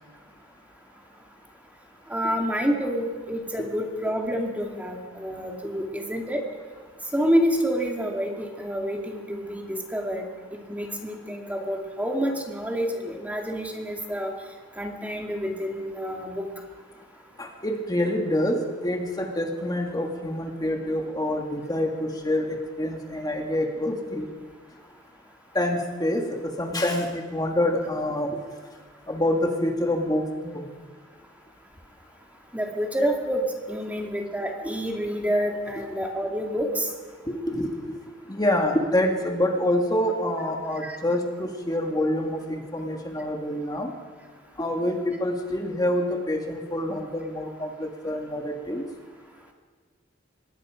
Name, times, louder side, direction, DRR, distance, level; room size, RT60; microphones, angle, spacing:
voice 1, 2.1-6.4 7.1-10.3 10.7-14.3 14.8-16.5 32.5-33.4 33.7-36.9 40.8-41.0, equal, 10° right, 1 dB, 2.2 m, -28 dB
voice 2, 17.4-24.3 25.5-28.4 29.1-30.6 37.3-37.9 38.3-43.9 44.6-48.8, left 1 dB, 20° left, 2 dB, 2.3 m, -26 dB
25.0 x 21.0 x 5.1 m, 1.5 s
head